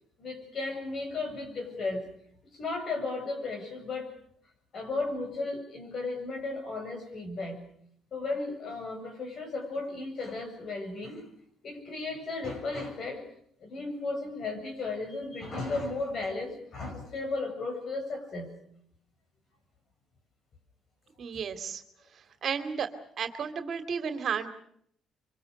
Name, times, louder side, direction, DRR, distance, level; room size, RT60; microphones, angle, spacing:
voice 1, 0.2-2.0 2.5-4.1 4.7-7.6 8.1-11.3 11.6-13.2 13.6-18.5, left 3 dB, 50° left, 5 dB, 7.5 m, -35 dB
voice 2, 21.2-21.8 22.1-22.9 23.2-24.5, right 6 dB, 50° right, 9 dB, 2.5 m, -33 dB
25.5 x 24.5 x 6.6 m, 0.67 s
cardioid pair, 110°, 0 cm